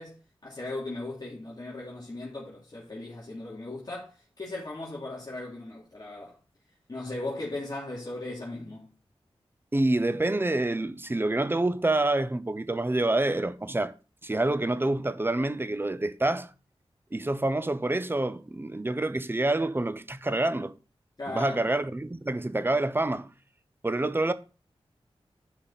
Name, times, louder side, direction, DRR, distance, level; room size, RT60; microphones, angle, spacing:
voice 1, 0.0-6.4 6.9-8.9 21.2-21.6, left 2 dB, 40° left, 3.0 m, -37 dB
voice 2, 9.7-13.9 14.2-16.5 17.1-20.8 21.3-23.3 23.8-24.3, right 2 dB, 20° right, 0.8 m, -27 dB
11.5 x 5.4 x 4.2 m
wide cardioid pair, 85°, 10 cm